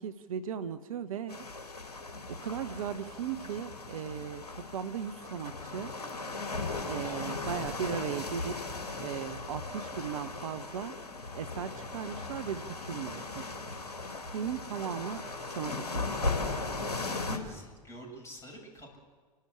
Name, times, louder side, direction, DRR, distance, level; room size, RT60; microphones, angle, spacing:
voice 1, 0.0-1.5 2.3-5.9 6.9-8.6 9.0-11.0 11.4-13.6 14.3-15.3 15.5-16.2, right 8 dB, 55° right, 12 dB, 0.9 m, -37 dB
sound 1, 1.3-17.4, left 3 dB, 75° left, 2.9 m, -37 dB
voice 2, 16.9-19.0, equal, 15° left, 0 dB, 7.6 m, -48 dB
29.5 x 12.5 x 8.6 m, 1.4 s
figure-of-eight pair, 95°, 20 cm